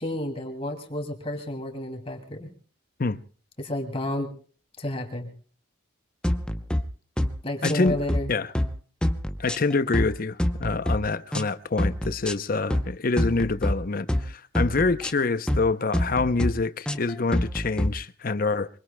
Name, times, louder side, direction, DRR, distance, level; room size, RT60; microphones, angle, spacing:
voice 1, 0.0-2.5 3.6-4.3 4.8-5.3 7.4-8.3, left 1 dB, 30° left, 2.5 m, -31 dB
sound 1, 6.2-6.8 7.2-7.3 7.6-8.2 8.5-8.7 9.0-10.1 10.4-11.0 11.3-11.5 11.8-12.3 12.7-12.9 13.2-13.7 14.1-14.3 14.5-15.1 15.5-15.6 15.9-16.5 16.9-17.9, left 1 dB, 5° left, 0.7 m, -25 dB
voice 2, 7.6-8.0 8.3-8.5 9.4-18.7, left 3 dB, 45° left, 0.6 m, -26 dB
24.0 x 23.0 x 2.2 m
head